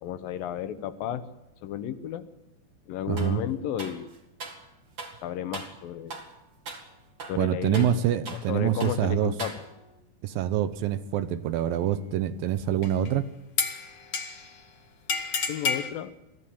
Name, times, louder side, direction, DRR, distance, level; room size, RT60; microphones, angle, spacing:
voice 1, 0.0-1.3 1.6-2.3 2.9-4.1 5.2-6.2 7.3-8.0 8.3-9.6 15.5-16.1, left 10 dB, 75° left, 12 dB, 2.5 m, -33 dB
voice 2, 3.1-3.4 7.4-9.3 10.2-13.3, right 10 dB, 75° right, 13 dB, 2.5 m, -26 dB
sound 1, 3.2-3.4 3.8-4.7 5.0-5.2 5.5-5.8 6.1-6.4 6.7-6.9 7.2-8.5 8.8-9.0 9.4-10.0, right 3 dB, 40° right, 2.2 m, -40 dB
sound 2, 12.8-13.1 13.6-14.6 15.1-15.9, left 5 dB, 50° left, 1.3 m, -29 dB
22.5 x 14.5 x 8.6 m, 0.93 s
omnidirectional pair, 4.3 m